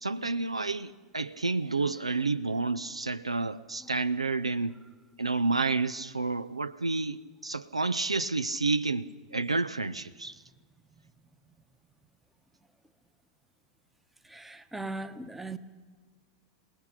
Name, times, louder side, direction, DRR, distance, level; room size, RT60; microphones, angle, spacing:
voice 1, 0.0-4.7 5.2-10.4, right 3 dB, 85° right, 0.6 m, -30 dB
voice 2, 14.3-15.6, right 2 dB, 5° right, 1.1 m, -38 dB
27.5 x 19.0 x 5.9 m
figure-of-eight pair, 90°, 3 cm